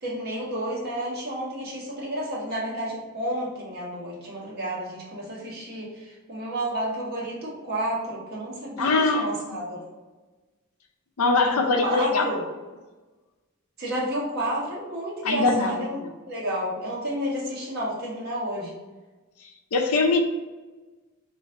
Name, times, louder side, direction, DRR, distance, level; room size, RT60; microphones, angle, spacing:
voice 1, 0.0-9.8 11.5-12.4 13.8-16.0 16.3-18.8, right 1 dB, 50° right, -5 dB, 1.3 m, -31 dB
voice 2, 8.8-9.2 11.2-12.3 15.2-16.0 19.7-20.2, left 3 dB, 85° left, 4 dB, 0.6 m, -22 dB
3.3 x 3.1 x 3.7 m, 1.2 s
head